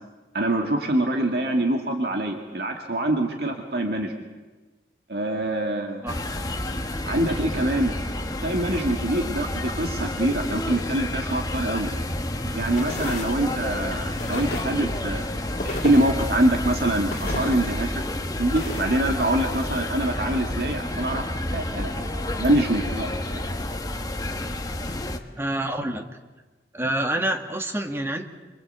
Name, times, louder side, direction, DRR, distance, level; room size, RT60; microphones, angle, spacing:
voice 1, 0.3-4.1 5.1-6.0 7.1-7.9 8.4-11.9 12.4-15.3 15.6-18.0 18.4-21.2 21.5-23.4, right 1 dB, 60° right, 2 dB, 2.4 m, -25 dB
sound 1, 6.1-25.2, left 1 dB, 20° left, 1.4 m, -30 dB
sound 2, 12.8-13.4 14.1-14.8 15.6-16.3 17.1-17.7 18.5-18.8, left 2 dB, 40° left, 3.2 m, -33 dB
voice 2, 25.4-26.0 26.7-28.2, right 1 dB, 15° right, 4 dB, 1.8 m, -27 dB
26.5 x 24.5 x 8.2 m, 1.2 s
head